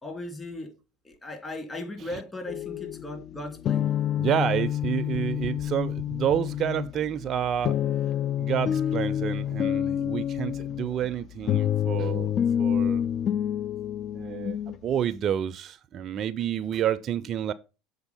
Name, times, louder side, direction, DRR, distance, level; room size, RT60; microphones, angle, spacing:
voice 1, 0.0-0.7 1.0-3.9, left 2 dB, 20° left, 2.8 m, -37 dB
sound 1, 2.5-14.8, left 10 dB, 45° left, 0.4 m, -28 dB
voice 2, 4.1-7.8 8.4-12.3 12.6-13.1 14.1-17.5, right 9 dB, 45° right, 0.4 m, -29 dB
6.9 x 4.0 x 5.4 m
hypercardioid pair, 75°, 0 cm